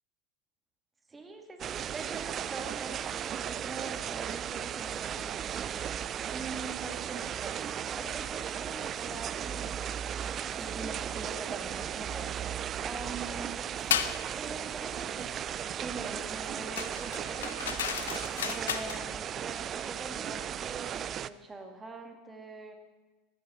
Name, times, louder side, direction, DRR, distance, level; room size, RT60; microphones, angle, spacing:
voice 1, 1.1-5.5 6.3-13.7 14.3-15.3 15.7-22.8, right 3 dB, 20° right, 5 dB, 1.7 m, -44 dB
sound 1, 1.6-21.3, right 9 dB, 35° right, 0.3 m, -36 dB
sound 2, 13.9-14.2 16.8-19.0, left 9 dB, 75° left, 0.5 m, -33 dB
13.5 x 11.0 x 4.1 m, 1.2 s
hypercardioid pair, 85°, 0 cm